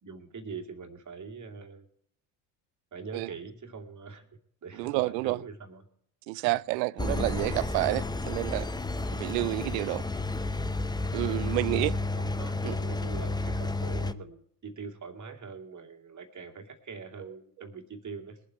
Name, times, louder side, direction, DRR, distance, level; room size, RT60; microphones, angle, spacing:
voice 1, 0.0-1.9 2.9-4.3 4.6-5.8 6.3-6.6 9.1-9.4 11.2-18.4, right 5 dB, 35° right, 2.6 m, -43 dB
voice 2, 4.8-5.4 6.3-8.7 9.2-10.0 11.1-11.9, right 23 dB, 80° right, 0.6 m, -29 dB
Engine, 7.0-14.1, left 2 dB, 10° left, 0.7 m, -31 dB
21.0 x 7.8 x 4.7 m
hypercardioid pair, 70°, 49 cm